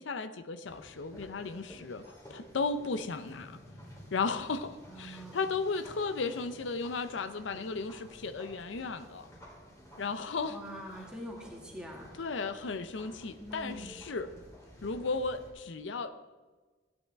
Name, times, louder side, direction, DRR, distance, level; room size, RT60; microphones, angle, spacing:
voice 1, 0.0-3.6 4.1-9.3 10.0-10.6 12.2-14.3 14.8-16.1, left 4 dB, 80° left, 11 dB, 0.6 m, -35 dB
sound 1, 0.6-15.5, equal, 15° left, 2.4 m, -53 dB
sound 2, 3.3-11.5, left 1 dB, 55° left, 3.2 m, -58 dB
voice 2, 4.9-5.5 10.5-12.1 13.4-13.9, equal, 5° right, -2 dB, 2.0 m, -44 dB
15.0 x 9.0 x 3.5 m, 1.3 s
head